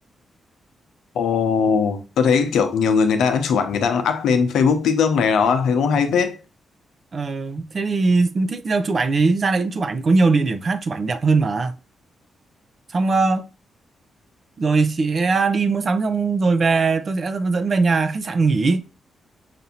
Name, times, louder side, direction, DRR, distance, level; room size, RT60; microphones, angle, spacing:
voice 1, 1.1-6.4, left 6 dB, 80° left, 0.7 m, -19 dB
voice 2, 7.1-11.7 12.9-13.4 14.6-18.8, right 4 dB, 50° right, 0.6 m, -20 dB
5.8 x 2.6 x 2.7 m
cardioid pair, 60°, 0 cm